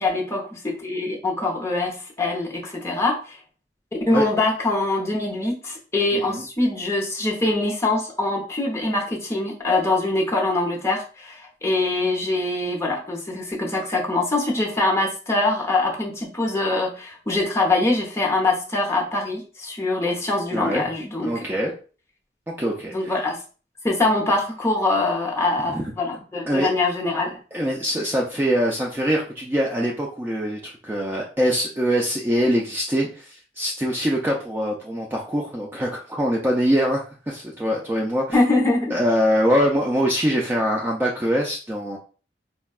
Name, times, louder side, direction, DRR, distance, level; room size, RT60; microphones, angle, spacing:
voice 1, 0.0-3.4 3.9-21.3 22.9-23.4 23.8-27.4 38.3-39.0, left 2 dB, 15° left, -1 dB, 0.7 m, -23 dB
voice 2, 6.1-6.5 20.5-20.8 21.2-21.7 22.5-23.1 25.7-25.9 26.5-26.7 27.5-38.4 38.9-42.0, equal, 10° right, -2 dB, 0.3 m, -23 dB
4.3 x 2.2 x 2.3 m, 0.37 s
head